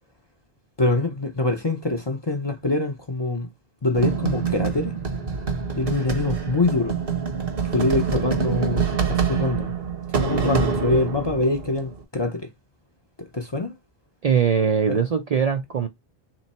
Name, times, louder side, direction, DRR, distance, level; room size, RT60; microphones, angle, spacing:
voice 1, 0.8-3.5 3.8-5.0 5.8-7.0 7.7-9.7 10.2-12.5 13.2-13.7 14.9-15.0, left 2 dB, 30° left, 0.6 m, -24 dB
sound 1, 3.9-12.0, right 5 dB, 70° right, 1.2 m, -26 dB
voice 2, 14.2-15.9, right 7 dB, 50° right, 0.5 m, -21 dB
3.2 x 3.1 x 4.1 m
omnidirectional pair, 1.0 m